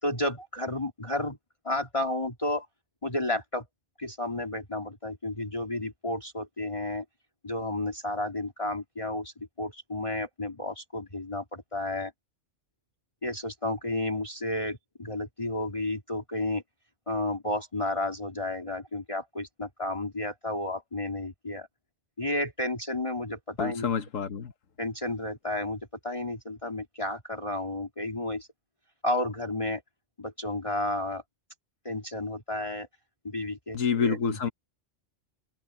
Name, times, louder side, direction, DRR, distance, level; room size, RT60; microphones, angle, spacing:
voice 1, 0.0-1.4 1.6-2.7 3.0-3.6 4.0-7.0 7.4-12.1 13.2-16.6 17.1-21.7 22.2-23.9 24.8-28.5 29.0-29.8 30.2-31.2 31.8-32.9 33.2-34.4, left 1 dB, 25° left, 2.7 m, -32 dB
voice 2, 23.6-24.5 33.7-34.5, left 6 dB, 85° left, 1.6 m, -28 dB
omnidirectional pair, 1.3 m